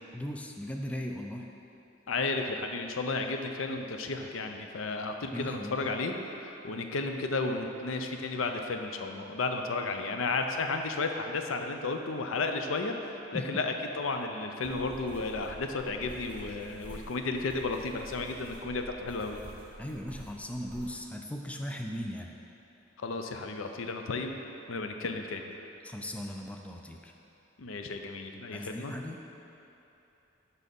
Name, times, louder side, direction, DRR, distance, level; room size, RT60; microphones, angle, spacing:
voice 1, 0.1-1.5 5.3-5.8 13.3-13.5 19.8-22.3 25.8-27.1 28.5-29.4, equal, 5° left, 2 dB, 0.3 m, -38 dB
voice 2, 2.1-19.4 23.0-24.4 24.7-25.5 27.6-28.9, left 3 dB, 85° left, 5 dB, 0.6 m, -33 dB
sound 1, 14.6-21.0, equal, 10° right, 1.4 m, -48 dB
6.2 x 5.5 x 5.3 m, 2.9 s
head